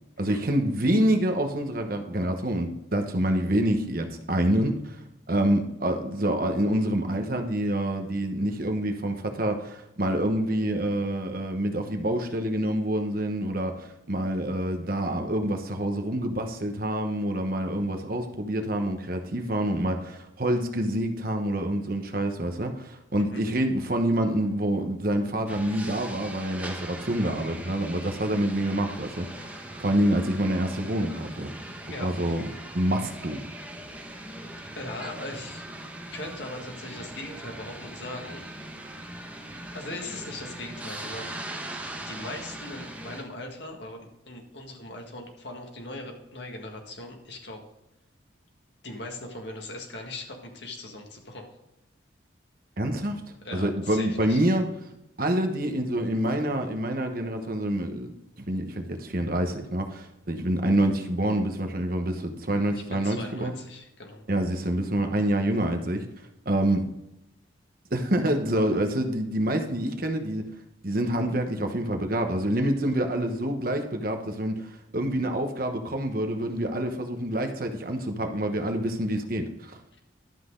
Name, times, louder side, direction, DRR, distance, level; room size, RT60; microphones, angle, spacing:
voice 1, 0.2-5.0 5.3-31.5 32.0-32.5 32.7-33.4 52.8-53.2 53.5-54.7 55.2-63.5 64.3-66.1 66.4-66.9 67.9-70.5 70.8-79.8, right 1 dB, 45° right, 5 dB, 1.1 m, -27 dB
sound 1, 25.5-43.2, right 1 dB, 5° right, 1.1 m, -40 dB
voice 2, 31.9-32.5 34.8-35.6 36.1-38.4 39.7-41.3 41.6-47.6 48.8-51.4 53.4-54.4 62.7-64.2, left 2 dB, 60° left, 2 dB, 1.8 m, -39 dB
12.0 x 5.9 x 3.8 m, 0.88 s
head